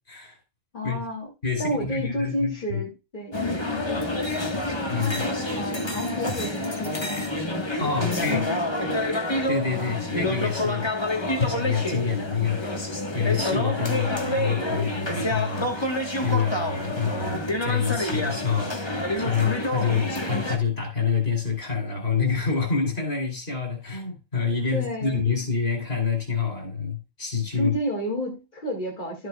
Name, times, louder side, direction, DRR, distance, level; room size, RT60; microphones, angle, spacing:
voice 1, 0.7-1.3 1.6-4.6 5.5-7.2 8.0-9.0 9.9-10.0 24.7-25.2 27.6-29.3, left 1 dB, 45° left, 2.9 m, -31 dB
voice 2, 1.4-2.8 4.9-5.2 7.8-8.4 9.5-10.9 11.4-15.9 16.2-18.9 19.2-27.7, left 6 dB, 65° left, 3.8 m, -27 dB
sound 1, 3.3-20.6, left 1 dB, 25° left, 1.5 m, -28 dB
13.0 x 7.8 x 2.4 m
omnidirectional pair, 1.1 m